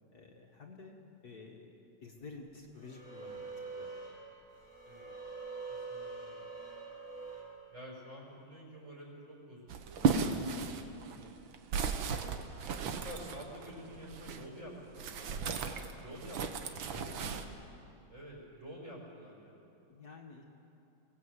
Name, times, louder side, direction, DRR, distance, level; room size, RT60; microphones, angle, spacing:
voice 1, 0.1-3.4 3.7-3.9 16.9-17.4 19.9-20.4, left 3 dB, 50° left, 0 dB, 2.1 m, -51 dB
sound 1, 2.2-2.3 2.8-7.4, right 4 dB, 55° right, 4.9 m, -45 dB
voice 2, 5.7-6.4 7.7-10.7 11.0-11.4 12.8-15.4 15.9-17.4 17.7-19.7, equal, 35° right, -3 dB, 6.0 m, -50 dB
sound 2, 9.7-14.5 14.9-17.5, right 5 dB, 75° right, 1.9 m, -35 dB
24.0 x 18.5 x 8.2 m, 2.8 s
omnidirectional pair, 2.2 m